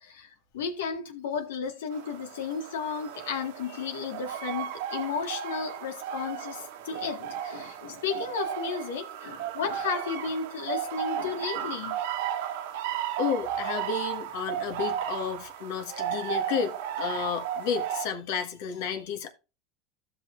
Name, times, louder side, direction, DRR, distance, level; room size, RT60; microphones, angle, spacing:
voice 1, 0.0-12.0, left 6 dB, 90° left, 1.9 m, -33 dB
sound 1, 1.9-18.1, right 10 dB, 75° right, 1.3 m, -34 dB
voice 2, 13.2-19.3, left 6 dB, 70° left, 1.7 m, -32 dB
15.0 x 5.8 x 2.6 m
supercardioid pair, 110°, 0 cm